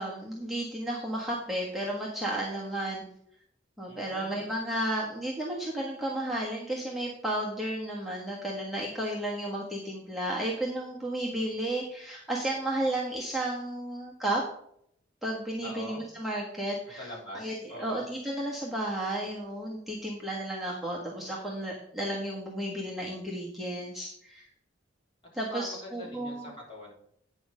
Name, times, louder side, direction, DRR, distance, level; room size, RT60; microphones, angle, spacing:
voice 1, 0.0-3.0 3.8-14.4 15.2-24.5 25.3-26.4, right 1 dB, ahead, -5 dB, 1.5 m, -33 dB
voice 2, 3.9-4.4 15.6-16.0 17.0-18.1 25.3-26.9, left 1 dB, 30° left, -4 dB, 3.8 m, -43 dB
9.5 x 6.3 x 5.0 m, 0.68 s
head